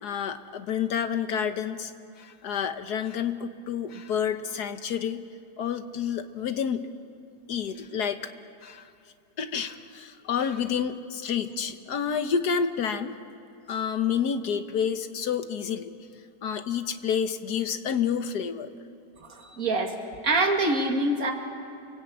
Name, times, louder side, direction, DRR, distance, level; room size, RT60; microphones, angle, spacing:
voice 1, 0.0-1.9 2.2-5.2 5.6-6.9 7.5-8.2 8.6-8.9 9.4-13.2 13.7-15.9 16.4-18.7, left 7 dB, 65° left, 9 dB, 1.6 m, -29 dB
voice 2, 19.2-19.9 20.2-21.3, right 2 dB, 50° right, 2 dB, 2.7 m, -25 dB
29.5 x 19.0 x 8.5 m, 2.7 s
omnidirectional pair, 1.9 m